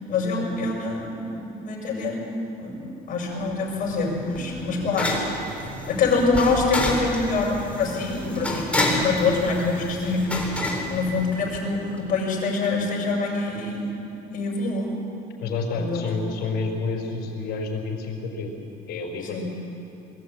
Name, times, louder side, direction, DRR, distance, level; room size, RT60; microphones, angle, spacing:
voice 1, 0.1-2.2 2.6-5.5 5.9-10.6 10.9-14.0 14.3-14.9 15.7-16.0 19.3-19.4, left 3 dB, 55° left, -2 dB, 6.3 m, -25 dB
sound 1, 3.4-11.7, left 1 dB, 5° left, 3.8 m, -30 dB
voice 2, 15.4-18.5 18.9-19.4, left 3 dB, 75° left, 1 dB, 4.5 m, -29 dB
22.0 x 14.5 x 8.7 m, 2.9 s
cardioid pair, 110°, 17 cm